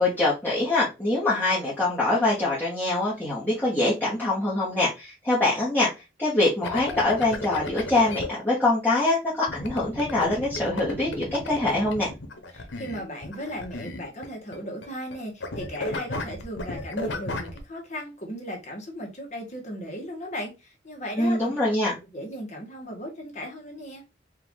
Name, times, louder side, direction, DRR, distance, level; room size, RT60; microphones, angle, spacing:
voice 1, 0.0-5.9 6.2-12.1 21.2-22.0, left 2 dB, 10° left, 1.2 m, -24 dB
sound 1, 6.6-8.3 9.5-14.6 14.8-15.2 15.4-17.6, left 2 dB, 85° left, 0.9 m, -34 dB
voice 2, 12.5-21.5 22.1-24.0, equal, 40° left, 1.3 m, -36 dB
4.5 x 2.6 x 3.6 m
head